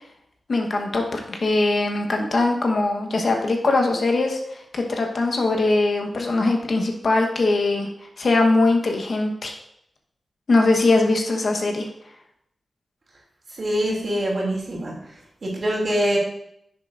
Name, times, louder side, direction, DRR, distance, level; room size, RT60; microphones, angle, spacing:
voice 1, 0.5-7.9 8.2-9.5 10.5-11.9, left 2 dB, 55° left, 2 dB, 1.1 m, -21 dB
voice 2, 13.5-14.9 15.4-16.2, equal, 50° right, -3 dB, 2.7 m, -24 dB
10.5 x 6.7 x 2.6 m, 0.75 s
wide cardioid pair, 95°, 0 cm